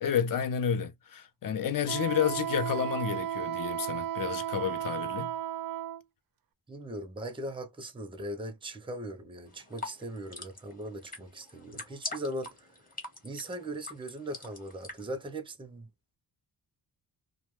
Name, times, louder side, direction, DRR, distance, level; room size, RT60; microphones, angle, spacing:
voice 1, 0.0-5.3, left 8 dB, 55° left, 0.6 m, -30 dB
Wind instrument woodwind instrument, 1.9-6.0, right 12 dB, 60° right, 0.5 m, -34 dB
voice 2, 6.7-12.7 13.2-15.9, right 1 dB, 15° right, 0.5 m, -39 dB
sound 1, 9.5-15.1, left 2 dB, 20° left, 1.0 m, -43 dB
2.2 x 2.2 x 3.0 m
wide cardioid pair, 135°, 40 cm